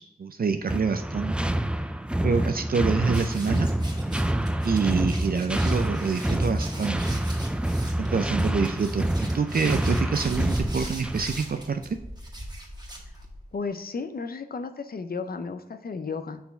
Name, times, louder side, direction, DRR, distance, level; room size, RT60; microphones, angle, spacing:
voice 1, 0.0-1.5 2.2-3.7 4.6-7.2 8.0-12.0, right 5 dB, 65° right, 7 dB, 0.4 m, -27 dB
sound 1, 0.7-11.4, right 1 dB, 5° right, 0.3 m, -27 dB
sound 2, 3.1-13.5, right 1 dB, 25° right, 1.8 m, -40 dB
voice 2, 13.5-16.4, left 4 dB, 70° left, 9 dB, 0.6 m, -34 dB
5.8 x 4.2 x 4.3 m, 0.91 s
wide cardioid pair, 75°, 16 cm